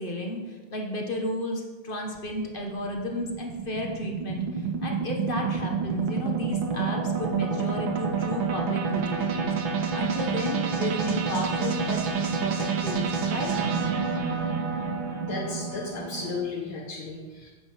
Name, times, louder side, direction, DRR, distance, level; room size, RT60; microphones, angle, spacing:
voice 1, 0.0-9.5 9.9-13.5, left 1 dB, 35° left, 1 dB, 1.0 m, -33 dB
sound 1, 2.2-16.4, right 5 dB, 70° right, 1.9 m, -28 dB
voice 2, 15.2-17.5, left 4 dB, 70° left, -3 dB, 2.0 m, -34 dB
8.6 x 6.9 x 5.6 m, 1.3 s
omnidirectional pair, 2.3 m